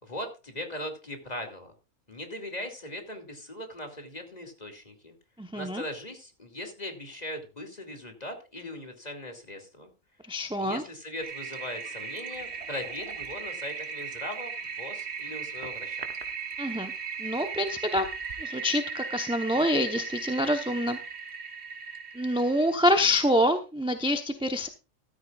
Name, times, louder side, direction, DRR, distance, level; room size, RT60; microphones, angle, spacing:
voice 1, 0.0-1.7 2.1-5.2 5.5-9.9 10.6-16.1, left 1 dB, 30° left, 5 dB, 2.7 m, -39 dB
voice 2, 5.4-5.8 10.3-10.8 16.6-16.9 17.2-18.1 18.4-21.0 22.1-24.7, equal, 5° right, 6 dB, 0.8 m, -26 dB
Toilet flush, 11.2-22.8, right 5 dB, 55° right, 1.6 m, -37 dB
14.0 x 13.0 x 2.4 m, 0.30 s
omnidirectional pair, 1.3 m